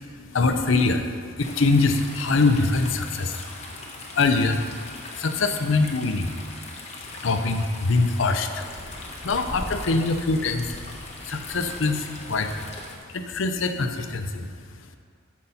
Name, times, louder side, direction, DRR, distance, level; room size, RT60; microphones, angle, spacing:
voice 1, 0.3-15.0, left 3 dB, 65° left, 7 dB, 0.6 m, -25 dB
sound 1, 1.4-13.0, left 2 dB, 30° left, 1.0 m, -41 dB
sound 2, 8.5-12.9, equal, 20° right, 1.9 m, -41 dB
9.8 x 7.1 x 4.1 m, 2.2 s
head